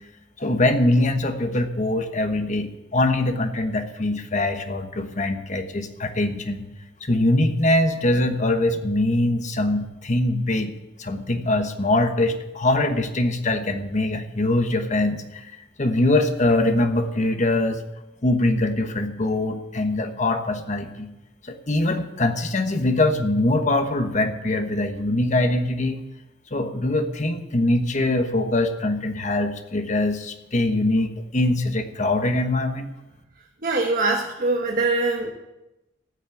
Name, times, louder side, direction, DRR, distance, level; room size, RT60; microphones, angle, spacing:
voice 1, 0.4-6.7 7.0-10.7 11.0-15.5 15.8-17.8 18.2-21.1 21.4-26.0 26.5-32.9, left 2 dB, 40° left, 7 dB, 1.2 m, -23 dB
voice 2, 33.6-35.3, right 3 dB, 50° right, 1 dB, 1.3 m, -23 dB
14.5 x 6.3 x 9.1 m, 0.96 s
head